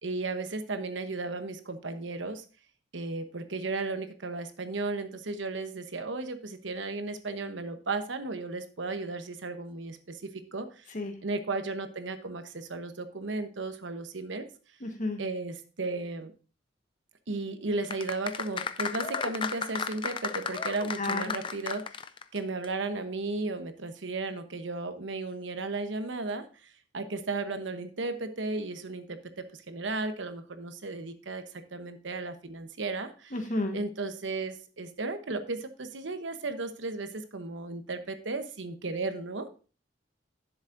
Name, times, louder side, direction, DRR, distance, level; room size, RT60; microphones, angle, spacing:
voice 1, 0.0-2.4 2.9-10.9 11.2-14.5 15.2-16.3 17.3-21.9 22.3-33.4 33.7-39.5, right 3 dB, 75° right, 9 dB, 1.0 m, -35 dB
voice 2, 14.8-15.2 21.0-21.4 33.3-33.8, left 2 dB, 45° left, 5 dB, 1.4 m, -31 dB
sound 1, 17.8-22.4 22.6-22.7, left 6 dB, 25° left, 0.4 m, -34 dB
10.5 x 7.3 x 2.6 m, 0.36 s
head